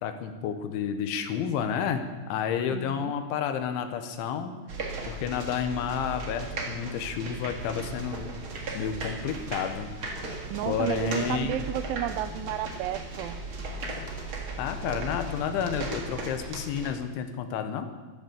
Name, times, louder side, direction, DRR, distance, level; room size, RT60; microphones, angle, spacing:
voice 1, 0.0-4.5 5.1-8.3 8.7-9.9 10.7-11.6 14.6-17.9, left 8 dB, 85° left, 7 dB, 3.5 m, -30 dB
voice 2, 2.7-3.1 10.5-13.4, right 13 dB, 85° right, 14 dB, 3.0 m, -32 dB
sound 1, 4.7-16.9, right 2 dB, 60° right, 1.3 m, -36 dB
14.5 x 12.0 x 6.8 m, 1.3 s
omnidirectional pair, 5.4 m